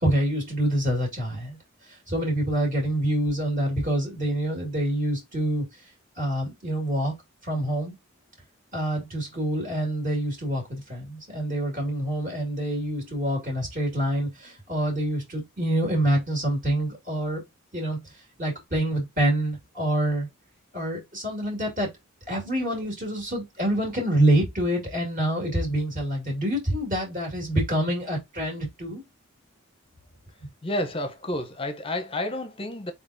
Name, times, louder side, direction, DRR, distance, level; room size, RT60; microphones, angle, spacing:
voice 1, 0.0-5.8 6.2-7.1 7.4-7.9 8.7-17.4 17.7-20.3 20.7-21.9 22.3-29.0, right 1 dB, 40° right, 2.1 m, -26 dB
voice 2, 30.3-32.9, left 1 dB, 25° left, 0.7 m, -31 dB
4.4 x 3.9 x 2.6 m
head